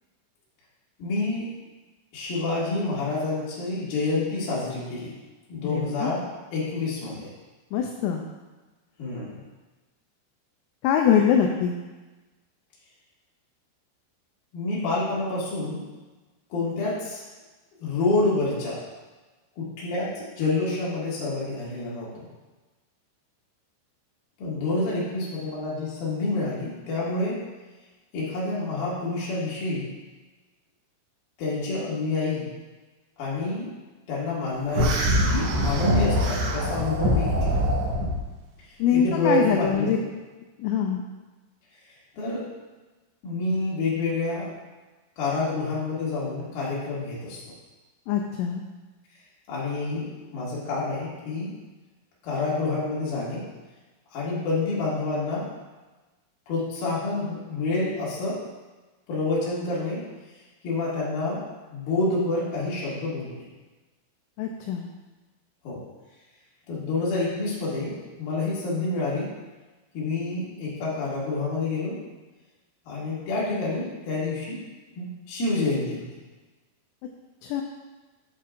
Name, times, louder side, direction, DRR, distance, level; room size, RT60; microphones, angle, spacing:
voice 1, 1.0-1.5 2.1-5.1 5.5-6.3 6.5-7.3 9.0-9.4 14.5-15.8 16.5-17.2 17.8-18.8 19.6-22.2 24.4-27.4 28.1-29.9 31.4-32.5 33.2-33.7 34.1-37.6 38.9-39.9 42.1-42.5 43.2-44.5 45.2-47.4 49.5-51.5 52.2-53.4 54.1-55.5 56.5-58.4 59.1-60.0 60.6-61.4 61.7-63.4 65.6-65.8 66.7-69.3 69.9-72.0 72.9-74.6 75.0-76.0, left 2 dB, 55° left, -7 dB, 3.3 m, -28 dB
voice 2, 5.6-6.1 7.7-8.2 10.8-11.7 38.8-40.0 40.6-41.0 48.1-48.6 64.4-64.9 77.5-77.6, left 8 dB, 85° left, 2 dB, 3.0 m, -23 dB
sound 1, 34.7-38.2, equal, 70° right, 2.9 m, -23 dB
8.4 x 8.3 x 2.5 m, 1.2 s
omnidirectional pair, 5.7 m